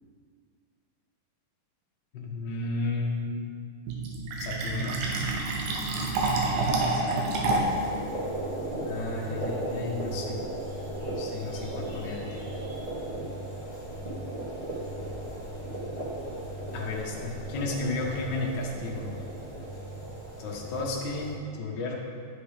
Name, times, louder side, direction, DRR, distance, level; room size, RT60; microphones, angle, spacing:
voice 1, 2.1-3.4 4.4-4.9 6.7-7.2 8.8-10.4 11.1-12.5 16.7-19.1 20.4-21.9, left 3 dB, 60° left, -3 dB, 1.1 m, -33 dB
Fill (with liquid), 3.9-7.9, right 2 dB, 75° right, 2.8 m, -28 dB
sound 1, 7.5-21.3, right 1 dB, 20° right, 1.2 m, -36 dB
12.0 x 6.9 x 5.1 m, 2.1 s
omnidirectional pair, 4.3 m